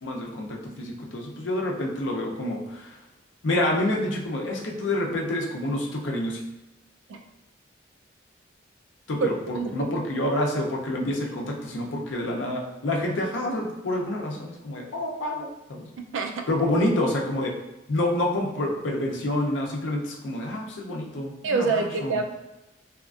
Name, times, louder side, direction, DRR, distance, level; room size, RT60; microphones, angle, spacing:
voice 1, 0.0-3.0 3.4-6.4 9.1-15.9 16.5-17.5 17.9-22.2, left 1 dB, 80° left, -1 dB, 0.6 m, -28 dB
voice 2, 9.2-9.7 16.1-16.4 21.4-22.3, right 4 dB, 85° right, 5 dB, 0.4 m, -26 dB
2.8 x 2.4 x 2.3 m, 0.97 s
head